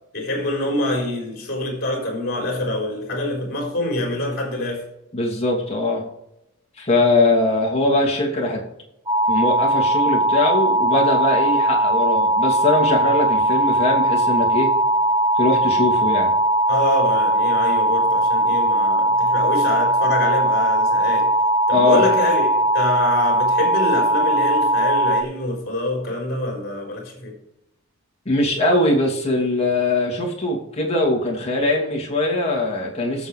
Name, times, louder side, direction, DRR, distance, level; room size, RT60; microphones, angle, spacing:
voice 1, 0.1-4.8 16.7-21.3 21.7-27.3, left 1 dB, 45° left, 4.1 m, -25 dB
voice 2, 5.1-6.0 6.8-8.6 9.3-14.7 15.4-16.3 21.7-22.0 28.2-33.3, left 2 dB, 30° left, 2.8 m, -21 dB
sound 1, 9.1-25.2, right 1 dB, 20° right, 1.4 m, -19 dB
18.0 x 7.3 x 3.3 m
head